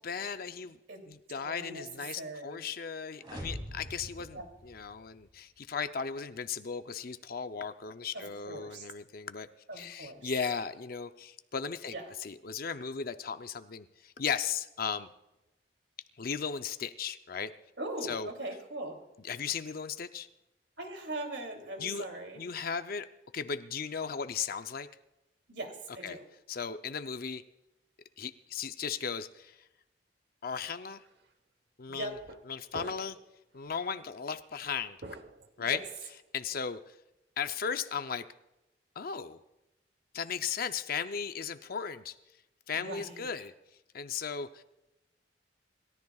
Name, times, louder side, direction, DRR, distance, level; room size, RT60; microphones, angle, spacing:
voice 1, 0.0-0.8 1.1-9.5 9.7-15.1 16.2-17.5 18.0-18.3 19.2-20.3 21.8-22.1 22.4-23.1 23.3-24.9 26.0-26.2 26.5-27.4 28.2-29.6 30.4-31.0 31.8-32.2 32.5-33.2 33.5-35.0 35.6-35.8 36.3-36.9 37.4-38.3 39.0-39.4 40.1-42.2 42.7-43.5 43.9-44.6, left 6 dB, 55° left, 9 dB, 0.6 m, -36 dB
voice 2, 1.3-1.8 2.1-2.6 4.3-4.4 8.1-8.9 9.7-10.3 11.9-12.0 17.8-19.0 20.8-22.4 25.5-26.2 31.9-32.2 35.6-35.8 42.7-43.3, right 2 dB, 90° right, 3 dB, 2.9 m, -40 dB
sound 1, 3.2-5.3, equal, 30° right, 3.2 m, -43 dB
sound 2, 31.0-31.2 32.1-32.4 32.7-33.3 33.6-33.8 35.0-36.1, right 2 dB, 65° right, 1.1 m, -47 dB
27.5 x 13.5 x 2.4 m, 0.96 s
head